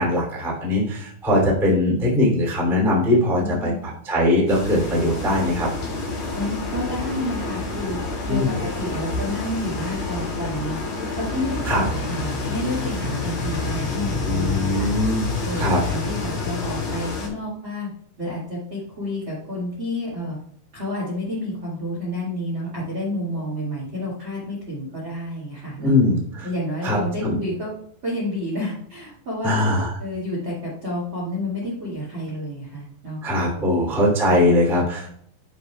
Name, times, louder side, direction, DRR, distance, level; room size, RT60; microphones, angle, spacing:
voice 1, 0.0-3.7 4.0-5.7 8.3-8.5 11.6-11.8 14.2-15.2 15.5-15.8 25.8-26.5 26.8-27.4 29.4-29.9 33.2-35.1, left 1 dB, ahead, -4 dB, 0.9 m, -21 dB
voice 2, 3.3-3.8 6.3-8.0 8.3-10.8 11.2-14.9 15.4-17.9 18.2-20.4 20.7-25.9 26.4-27.7 28.0-29.7 30.0-33.2 33.5-33.7 34.7-34.8, left 1 dB, 50° right, -5 dB, 1.5 m, -30 dB
sound 1, 4.5-17.3, left 2 dB, 60° left, 1.9 m, -29 dB
sound 2, 11.4-16.9, left 4 dB, 80° left, 3.7 m, -30 dB
12.0 x 5.5 x 2.3 m, 0.65 s
omnidirectional pair, 5.6 m